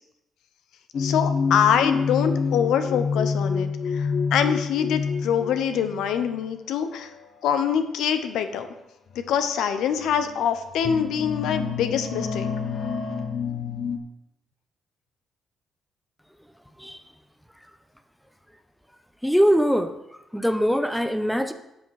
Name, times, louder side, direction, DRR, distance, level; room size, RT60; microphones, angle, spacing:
sound 1, 0.9-6.1 7.0-7.2 8.4-8.5 9.2-9.3 10.0-10.4 10.7-14.0, left 5 dB, 60° left, 1.0 m, -27 dB
voice 1, 1.0-7.1 7.4-8.7 9.1-12.5, left 8 dB, 85° left, 9 dB, 0.8 m, -24 dB
voice 2, 19.2-19.9 20.3-21.5, equal, ahead, 9 dB, 0.7 m, -22 dB
10.5 x 6.2 x 4.8 m, 0.89 s
cardioid pair, 90°, 0 cm